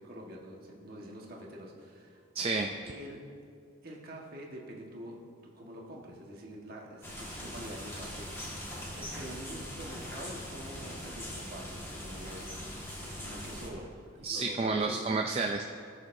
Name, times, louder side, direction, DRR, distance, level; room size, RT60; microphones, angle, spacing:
voice 1, 0.0-2.2 2.8-3.2 3.8-5.2 5.4-8.7 8.9-12.6 12.9-13.9 14.3-15.1, equal, 45° right, -1 dB, 1.4 m, -46 dB
voice 2, 2.3-2.7 14.2-15.6, right 3 dB, 30° right, 3 dB, 0.4 m, -30 dB
sound 1, 7.0-13.7, equal, 10° left, 1.6 m, -41 dB
19.5 x 6.6 x 2.6 m, 2.3 s
head